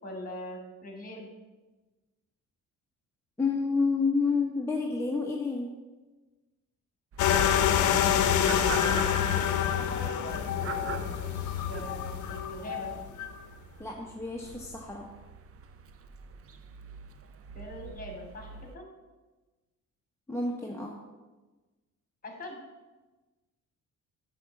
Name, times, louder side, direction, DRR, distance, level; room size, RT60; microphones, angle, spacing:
voice 1, 0.0-1.3 8.9-12.9 17.5-18.9 22.2-22.6, equal, 30° left, 1 dB, 2.7 m, -42 dB
voice 2, 3.4-5.7 13.8-15.1 20.3-21.0, left 4 dB, 10° left, -2 dB, 1.0 m, -29 dB
sound 1, 7.1-18.7, right 6 dB, 50° right, 0.7 m, -43 dB
sound 2, 7.2-13.4, left 9 dB, 75° left, 0.7 m, -27 dB
9.6 x 3.8 x 7.3 m, 1.2 s
cardioid pair, 90°, 30 cm